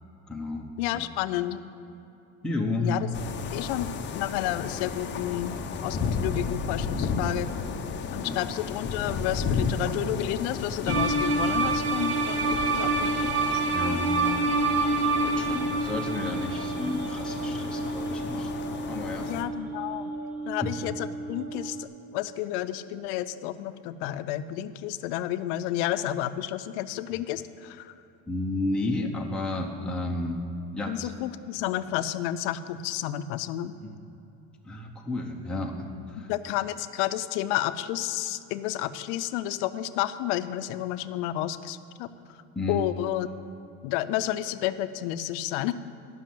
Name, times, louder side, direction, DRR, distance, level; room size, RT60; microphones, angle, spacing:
voice 1, 0.3-0.7 0.9-1.1 2.4-3.0 8.1-8.4 13.7-14.6 14.8-18.6 18.9-19.3 20.6-20.7 28.3-30.4 30.7-31.1 33.8-34.0 34.6-36.3 42.5-42.8, left 2 dB, ahead, -1 dB, 0.8 m, -32 dB
voice 2, 0.8-1.6 2.8-3.1 3.5-7.5 8.1-13.1 13.5-13.7 19.2-20.1 20.5-27.9 30.9-33.7 36.2-42.1 42.7-43.3 43.8-45.7, left 13 dB, 80° left, 12 dB, 0.6 m, -31 dB
sound 1, 3.1-19.4, left 5 dB, 30° left, 0.7 m, -33 dB
sound 2, 10.9-21.8, right 3 dB, 45° right, 1.4 m, -28 dB
11.5 x 6.3 x 7.5 m, 2.9 s
cardioid pair, 130°, 34 cm